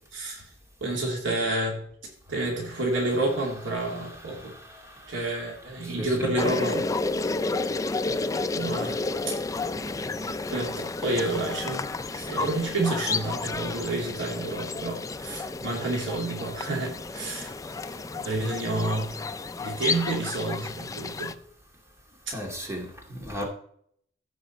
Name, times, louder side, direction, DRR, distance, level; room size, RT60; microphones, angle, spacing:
voice 1, 0.1-0.5 0.8-4.5 5.1-6.9 8.5-9.4 10.5-17.5 18.1-19.2 19.6-21.3 22.3-22.4, right 2 dB, 75° right, 2.7 m, -29 dB
voice 2, 3.8-5.4 5.8-6.3 22.3-23.5, equal, 15° right, 2.2 m, -37 dB
sound 1, 6.4-21.3, left 3 dB, 15° left, 0.4 m, -31 dB
15.0 x 5.3 x 4.3 m
head